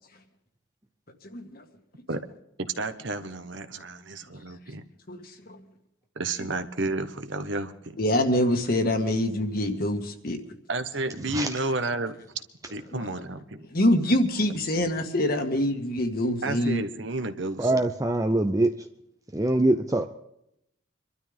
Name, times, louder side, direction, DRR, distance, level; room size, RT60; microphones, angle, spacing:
voice 1, 1.2-1.6 5.1-5.6 8.0-10.4 12.9-13.1 13.7-16.8, left 1 dB, 45° left, 6 dB, 1.7 m, -25 dB
voice 2, 2.6-4.8 6.2-7.7 10.7-12.4 12.7-13.6 16.4-17.7, right 2 dB, 65° right, 9 dB, 1.2 m, -31 dB
voice 3, 17.6-18.7 19.3-20.1, right 2 dB, 15° right, 6 dB, 0.6 m, -23 dB
25.5 x 12.5 x 3.5 m, 0.78 s
head